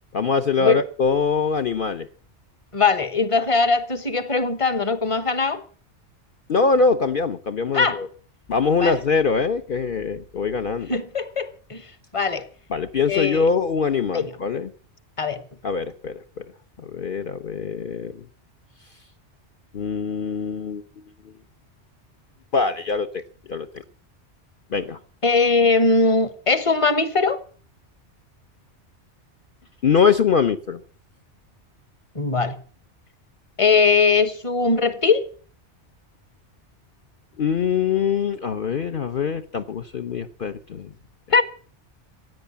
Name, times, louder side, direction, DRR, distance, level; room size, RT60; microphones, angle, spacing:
voice 1, 0.1-2.1 6.5-8.1 8.5-10.9 12.7-14.7 15.6-16.4 16.8-18.1 19.7-20.8 21.2-21.4 22.5-23.2 23.5-23.8 24.7-25.0 29.8-30.8 37.4-40.9, left 5 dB, 50° left, 1.0 m, -23 dB
voice 2, 2.7-5.6 7.7-8.0 8.8-8.9 10.9-11.8 12.1-12.4 13.1-13.4 14.1-14.3 15.2-15.4 25.2-27.4 32.1-32.6 33.6-35.3 41.3-41.4, left 4 dB, 30° left, 1.2 m, -20 dB
16.0 x 9.3 x 8.4 m
omnidirectional pair, 1.2 m